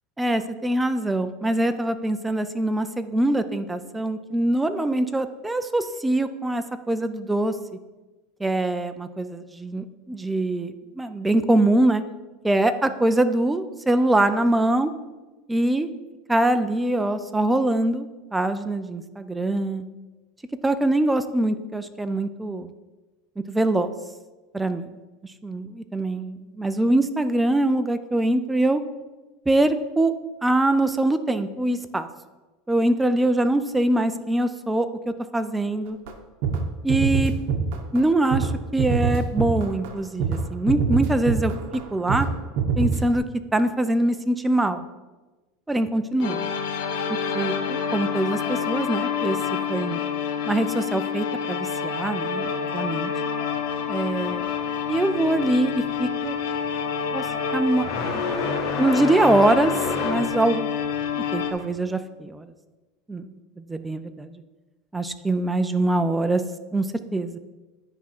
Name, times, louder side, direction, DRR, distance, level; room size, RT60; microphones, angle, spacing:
voice 1, 0.2-7.5 8.4-12.0 12.4-14.9 15.5-15.9 16.3-19.8 20.6-22.7 23.4-23.9 24.5-24.9 25.4-28.8 29.5-30.1 30.4-32.1 32.7-36.0 36.8-37.3 37.9-41.5 41.9-42.3 42.8-43.2 43.5-44.9 45.7-46.5 47.3-49.4 49.7-50.1 50.5-53.1 53.9-54.5 54.9-56.4 57.1-57.3 57.5-58.2 58.8-59.7 60.0-60.7 61.3-62.5 63.1-63.3 63.7-64.3 64.9-66.4 66.7-66.9 67.1-67.4, right 1 dB, 5° right, 11 dB, 0.3 m, -23 dB
sound 1, 36.1-36.2 36.4-36.6 36.9-38.0 38.3-38.5 38.8-39.9 40.2-40.4 40.7-41.8 42.1-42.3 42.6-43.2, right 5 dB, 65° right, 1.0 m, -24 dB
sound 2, 46.2-61.5, left 7 dB, 70° left, 1.0 m, -28 dB
sound 3, 53.6-61.7, left 3 dB, 35° left, 1.2 m, -32 dB
9.9 x 3.5 x 5.9 m, 1.2 s
supercardioid pair, 155°, 0 cm